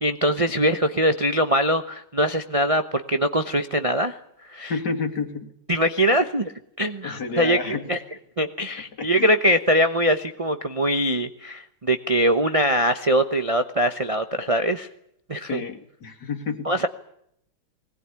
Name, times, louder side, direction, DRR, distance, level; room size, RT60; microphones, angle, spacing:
voice 1, 0.0-4.2 4.5-4.8 5.7-6.5 6.8-8.0 8.4-14.9 15.3-15.6 16.6-16.9, equal, 35° right, 7 dB, 0.5 m, -22 dB
voice 2, 4.6-5.5 7.0-7.8 9.0-9.3 15.4-16.8, left 4 dB, 50° left, 4 dB, 2.9 m, -30 dB
20.5 x 19.5 x 9.8 m, 0.73 s
omnidirectional pair, 2.3 m